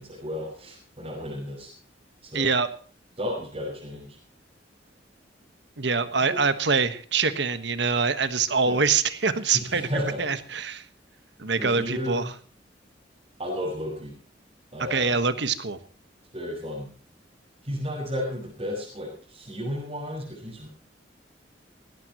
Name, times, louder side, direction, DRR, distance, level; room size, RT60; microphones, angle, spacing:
voice 1, 0.0-1.7 2.2-2.5 3.2-4.2 6.3-6.4 8.6-8.8 9.5-10.2 11.6-12.2 13.4-14.1 14.7-15.1 16.3-16.9 17.6-20.7, equal, 35° right, -4 dB, 5.7 m, -33 dB
voice 2, 2.3-2.7 5.8-9.9 10.2-10.8 11.4-12.3 14.8-15.8, right 5 dB, 70° right, 11 dB, 1.4 m, -24 dB
19.0 x 17.0 x 3.1 m, 0.42 s
head